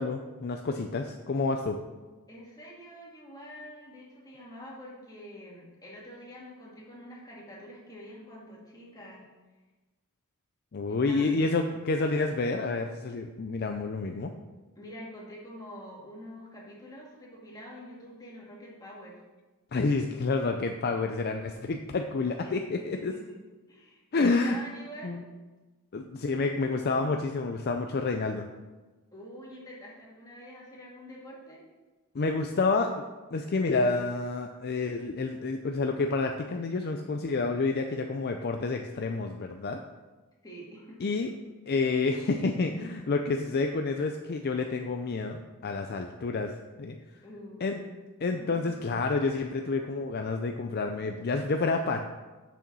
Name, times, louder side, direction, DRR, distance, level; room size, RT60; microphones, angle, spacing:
voice 1, 0.0-1.8 10.7-14.3 19.7-23.1 24.1-24.6 25.0-25.2 25.9-28.5 32.1-33.0 33.3-39.8 41.0-41.3 41.7-46.5 46.8-47.0 47.6-47.8 48.2-52.1, left 3 dB, 45° left, 5 dB, 0.5 m, -29 dB
voice 2, 2.3-9.2 10.9-11.3 14.8-19.2 22.4-23.4 23.7-25.3 29.1-31.6 40.4-41.1 47.2-48.0 48.4-48.7, equal, 15° left, -5 dB, 2.2 m, -46 dB
6.8 x 6.2 x 6.1 m, 1.2 s
head